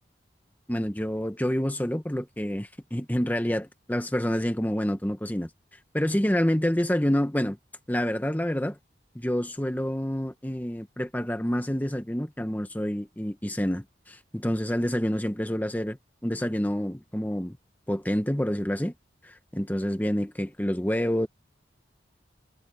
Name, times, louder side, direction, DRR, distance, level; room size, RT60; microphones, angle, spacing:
voice 1, 0.7-5.5 5.9-7.6 7.9-8.8 9.1-16.0 16.2-17.6 17.9-18.9 19.2-21.3, equal, 10° left, 1.0 m, -28 dB
head